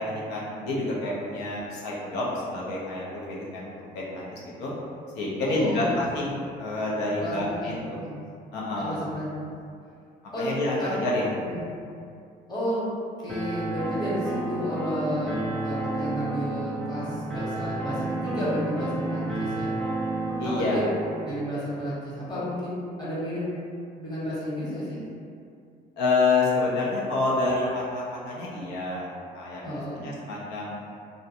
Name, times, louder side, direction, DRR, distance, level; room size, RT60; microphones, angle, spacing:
voice 1, 0.0-4.7 5.1-6.3 6.6-8.0 8.5-8.9 10.4-11.4 20.4-20.8 26.0-29.1 29.3-30.9, left 2 dB, 90° left, -5 dB, 0.6 m, -28 dB
voice 2, 5.4-6.1 7.2-7.7 8.0-8.1 8.8-9.5 10.3-10.5 10.8-10.9 11.4-11.6 12.5-12.8 13.2-19.8 20.4-20.8 21.2-23.4 24.0-25.0 29.6-30.0, equal, 25° left, -9 dB, 1.0 m, -32 dB
sound 1, 13.3-21.3, right 2 dB, 5° left, 0.4 m, -31 dB
2.5 x 2.1 x 2.8 m, 2.4 s
cardioid pair, 110°, 17 cm